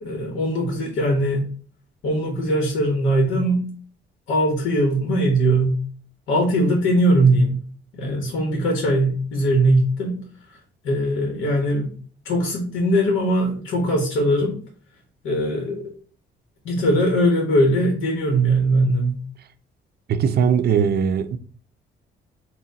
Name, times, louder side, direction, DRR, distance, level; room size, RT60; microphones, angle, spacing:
voice 1, 0.0-1.4 2.0-3.7 4.3-5.8 6.3-7.6 7.9-10.2 10.8-11.9 12.2-14.6 15.2-15.9 16.6-19.2, right 1 dB, 80° left, 1.1 m, -20 dB
voice 2, 20.1-21.4, right 7 dB, 55° right, 0.5 m, -20 dB
4.0 x 2.2 x 3.9 m
cardioid pair, 90°, 20 cm